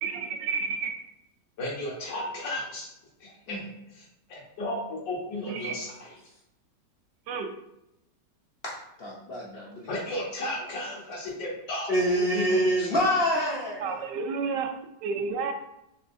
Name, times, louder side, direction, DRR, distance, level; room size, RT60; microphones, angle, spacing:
voice 1, 0.0-0.9 5.5-5.8 7.3-7.5 13.8-14.7 15.0-15.5, right 5 dB, 80° right, 5 dB, 1.2 m, -30 dB
voice 2, 1.6-2.9 3.2-3.6 3.9-6.1 9.9-13.0, left 1 dB, 90° left, -4 dB, 1.9 m, -34 dB
voice 3, 8.6-9.9 11.9-13.9, equal, 65° left, -5 dB, 0.5 m, -26 dB
4.2 x 3.1 x 2.6 m, 0.85 s
omnidirectional pair, 1.9 m